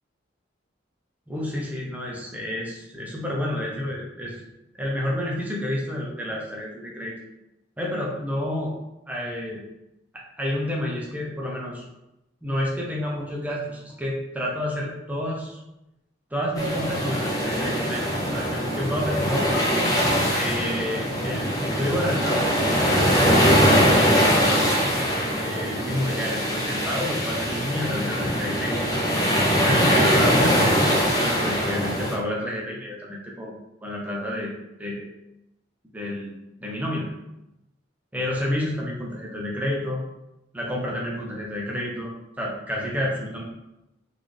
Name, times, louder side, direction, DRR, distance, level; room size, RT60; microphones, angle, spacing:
voice 1, 1.3-4.4 4.8-7.1 7.8-8.7 9.1-9.6 10.1-11.8 12.4-15.6 16.3-19.6 20.3-22.4 22.9-24.6 25.4-28.8 29.6-34.5 34.8-35.1 35.9-37.1 38.1-40.0 40.5-42.1 42.4-43.4, left 1 dB, 10° right, -3 dB, 0.9 m, -30 dB
sound 1, 16.6-32.1, equal, 20° left, 0.9 m, -22 dB
4.3 x 3.7 x 3.4 m, 0.90 s
head